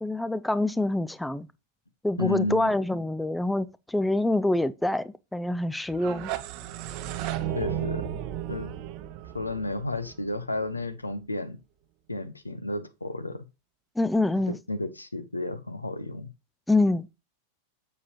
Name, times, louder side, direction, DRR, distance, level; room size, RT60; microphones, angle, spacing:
voice 1, 0.0-1.5 2.0-6.3 14.0-14.6 16.7-17.1, left 2 dB, 5° left, 0.4 m, -26 dB
voice 2, 2.2-2.7 7.5-8.1 8.5-8.7 9.3-11.6 12.1-13.5 14.3-16.3, left 2 dB, 85° left, 0.8 m, -32 dB
sound 1, 5.9-10.8, right 11 dB, 40° right, 0.8 m, -34 dB
7.3 x 6.9 x 3.0 m
figure-of-eight pair, 90°, 0 cm